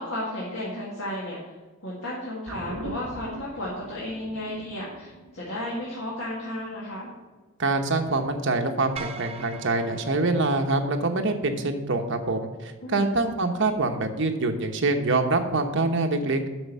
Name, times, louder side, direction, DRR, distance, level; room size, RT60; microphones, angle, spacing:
voice 1, 0.0-1.4 1.8-7.1 12.8-13.1, left 1 dB, 70° left, -6 dB, 2.0 m, -33 dB
sound 1, 2.5-7.1 7.4-7.5, right 1 dB, 85° right, 0.8 m, -42 dB
voice 2, 7.6-16.4, right 2 dB, 65° right, 5 dB, 1.1 m, -25 dB
sound 2, 9.0-11.3, right 5 dB, 30° right, 0.7 m, -42 dB
7.8 x 6.4 x 6.8 m, 1.2 s
head